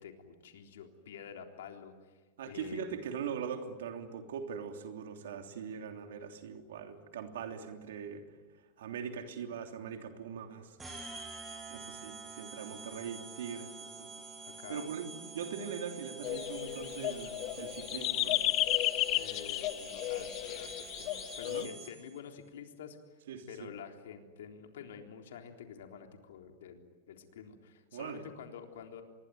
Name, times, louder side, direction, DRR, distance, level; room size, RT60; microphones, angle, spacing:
voice 1, 0.0-2.9 12.6-12.9 14.6-14.9 19.1-23.0 23.5-29.0, left 7 dB, 90° left, 4 dB, 3.7 m, -48 dB
voice 2, 2.4-8.2 8.8-10.8 11.7-13.7 14.0-14.1 14.4-18.4 21.4-21.7 23.3-23.7 27.9-28.2, right 7 dB, 90° right, 5 dB, 3.1 m, -41 dB
sound 1, 10.8-22.2, right 4 dB, 15° right, 6.8 m, -48 dB
sound 2, 16.2-21.7, left 16 dB, 45° left, 1.1 m, -33 dB
26.5 x 22.0 x 9.4 m, 1.3 s
supercardioid pair, 140°, 0 cm